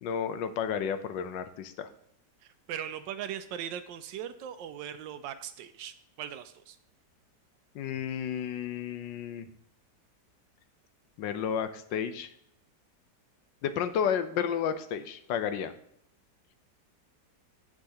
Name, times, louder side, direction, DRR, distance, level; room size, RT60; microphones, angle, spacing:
voice 1, 0.0-1.9 7.7-9.5 11.2-12.3 13.6-15.7, left 8 dB, 90° left, 10 dB, 1.4 m, -32 dB
voice 2, 2.4-6.8, right 9 dB, 90° right, 9 dB, 1.3 m, -39 dB
9.1 x 7.2 x 2.9 m, 0.74 s
omnidirectional pair, 1.9 m